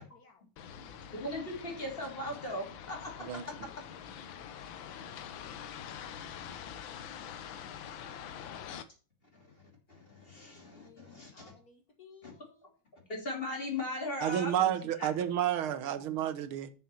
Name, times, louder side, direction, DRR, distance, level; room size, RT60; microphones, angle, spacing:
voice 1, 0.1-0.4 10.6-12.7, left 5 dB, 50° left, 1.8 m, -59 dB
sound 1, 0.6-8.8, left 8 dB, 75° left, 1.6 m, -45 dB
voice 2, 1.1-3.1 9.3-9.6 9.9-11.3 12.2-12.3 13.1-14.5 15.0-15.1, left 1 dB, 25° left, 2.9 m, -38 dB
voice 3, 14.2-16.7, right 10 dB, 90° right, 1.8 m, -30 dB
6.5 x 6.0 x 6.8 m
omnidirectional pair, 2.2 m